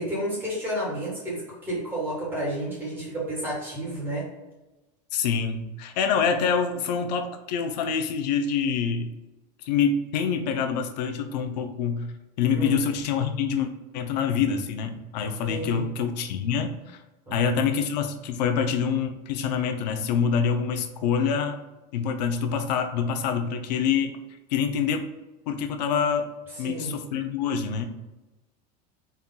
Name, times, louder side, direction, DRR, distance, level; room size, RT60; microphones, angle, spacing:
voice 1, 0.0-4.3 12.5-12.8 15.5-15.8 17.3-17.5 26.6-27.0, right 1 dB, 10° right, -6 dB, 1.4 m, -31 dB
voice 2, 5.1-9.1 9.6-12.1 12.4-17.0 17.3-21.6 21.9-24.1 24.5-25.1 25.5-26.3 26.6-27.8, left 6 dB, 90° left, 6 dB, 0.6 m, -26 dB
4.2 x 2.4 x 3.7 m, 1.1 s
supercardioid pair, 170°, 21 cm